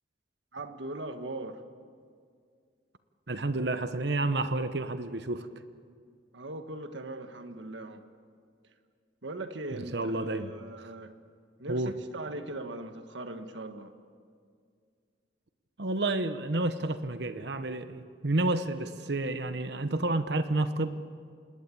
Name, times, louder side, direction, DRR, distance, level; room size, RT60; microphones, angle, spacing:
voice 1, 0.5-1.6 6.3-8.0 9.2-11.1 11.6-13.9, right 2 dB, 80° right, 7 dB, 1.6 m, -40 dB
voice 2, 3.3-5.5 9.7-10.5 10.8-10.9 11.7-11.9 15.8-21.0, right 2 dB, 65° right, 10 dB, 1.0 m, -30 dB
27.0 x 20.5 x 8.6 m, 2.2 s
head